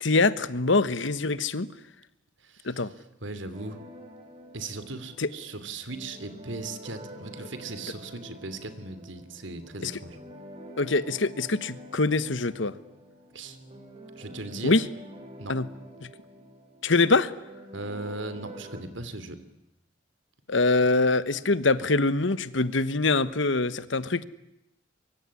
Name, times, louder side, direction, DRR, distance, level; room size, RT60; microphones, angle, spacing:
voice 1, 0.0-1.7 2.6-2.9 5.2-5.3 9.8-9.9 10.8-12.7 14.6-14.8 15.5-15.7 16.8-17.3 20.5-24.2, left 3 dB, 70° left, 16 dB, 1.3 m, -24 dB
voice 2, 2.4-3.8 4.5-10.2 13.3-13.6 14.2-14.7 15.4-15.6 17.7-19.4, right 2 dB, 70° right, 12 dB, 3.1 m, -38 dB
sound 1, 3.5-18.8, equal, 30° right, 5.1 m, -47 dB
24.5 x 23.5 x 9.9 m, 0.85 s
head